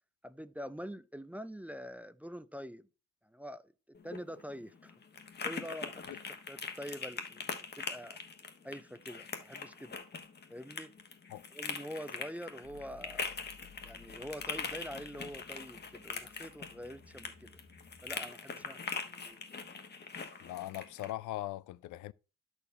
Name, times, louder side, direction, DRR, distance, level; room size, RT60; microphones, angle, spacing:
voice 1, 0.2-2.9 3.2-3.7 4.0-4.9 5.4-8.2 8.6-10.0 10.5-10.9 11.5-13.3 13.8-17.5 18.0-18.8 19.1-19.4, equal, 5° right, 0.4 m, -45 dB
sound 1, 3.9-21.1, left 5 dB, 35° left, 1.2 m, -42 dB
sound 2, 12.6-18.2, left 6 dB, 55° left, 1.4 m, -59 dB
voice 2, 20.4-22.1, left 15 dB, 80° left, 0.4 m, -40 dB
12.0 x 4.5 x 4.2 m
cardioid pair, 90°, 30 cm